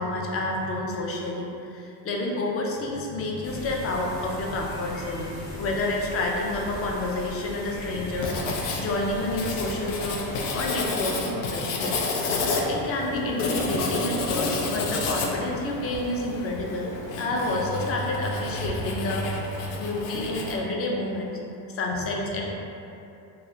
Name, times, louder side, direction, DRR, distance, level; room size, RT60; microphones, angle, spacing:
voice 1, 0.0-10.3 10.5-12.1 12.4-21.3 21.7-22.5, left 2 dB, 35° left, -1 dB, 0.5 m, -29 dB
sound 1, 3.4-10.9, left 1 dB, 60° left, 0.9 m, -39 dB
Writing, 8.2-20.6, left 3 dB, 85° left, 0.5 m, -30 dB
3.1 x 2.3 x 2.6 m, 2.8 s
cardioid pair, 100°, 40 cm